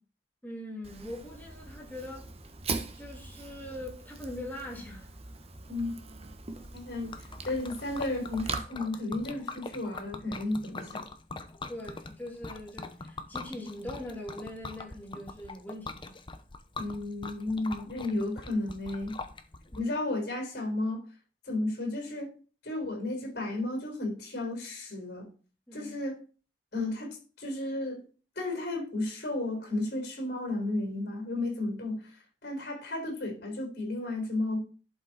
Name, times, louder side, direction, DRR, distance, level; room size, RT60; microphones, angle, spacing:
voice 1, 0.4-2.3 2.9-5.2 11.7-16.1 19.7-19.9 25.7-26.0, left 1 dB, 10° left, 2.6 m, -42 dB
Fire, 0.8-8.6, right 4 dB, 35° right, 1.0 m, -41 dB
Liquid, 6.6-19.8, left 3 dB, 30° left, 0.8 m, -43 dB
voice 2, 6.7-7.1 7.4-11.1 16.8-19.2 19.8-21.0 21.5-22.3 22.6-25.3 25.7-26.2 26.7-28.1 28.4-32.1 32.4-34.6, left 2 dB, 65° left, 4.3 m, -33 dB
11.5 x 5.4 x 4.3 m
head